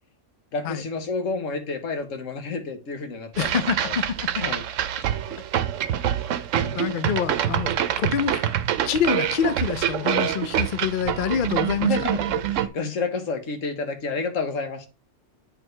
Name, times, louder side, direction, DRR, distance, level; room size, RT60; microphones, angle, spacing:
voice 1, 0.5-3.6 3.8-3.9 4.4-4.6 4.9-5.1 11.9-14.9, left 4 dB, 90° left, 1.5 m, -30 dB
sound 1, 3.3-12.7, right 10 dB, 85° right, 1.0 m, -25 dB
voice 2, 3.4-4.4 6.5-8.5 8.8-11.9, left 8 dB, 60° left, 0.5 m, -26 dB
8.8 x 4.6 x 3.2 m
omnidirectional pair, 1.3 m